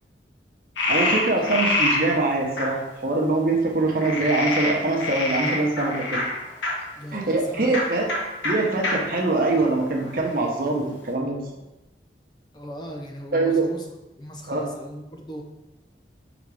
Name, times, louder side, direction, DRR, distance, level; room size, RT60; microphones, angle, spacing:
Frog, 0.8-2.0 2.6-2.7 4.0-6.7 7.6-7.8 8.1-8.2 8.4-8.5 8.8-8.9 9.5-10.3, left 2 dB, 85° left, 1.3 m, -25 dB
voice 1, 0.9-2.8 3.0-6.2 7.1-8.1 8.4-11.4 13.3-13.7 14.5-14.7, right 2 dB, 50° right, -1 dB, 1.0 m, -23 dB
voice 2, 6.9-7.8 12.5-13.9 14.2-15.4, equal, 25° left, 1 dB, 0.6 m, -38 dB
5.1 x 4.0 x 4.9 m, 0.97 s
head